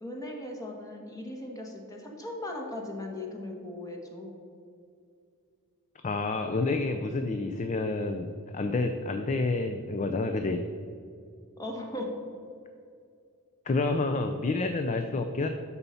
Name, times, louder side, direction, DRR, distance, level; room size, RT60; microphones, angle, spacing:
voice 1, 0.0-4.4 11.6-12.1, left 1 dB, 15° left, 0 dB, 1.3 m, -38 dB
voice 2, 6.0-10.6 13.7-15.5, left 3 dB, 35° left, 7 dB, 0.5 m, -29 dB
12.5 x 4.2 x 5.6 m, 2.4 s
head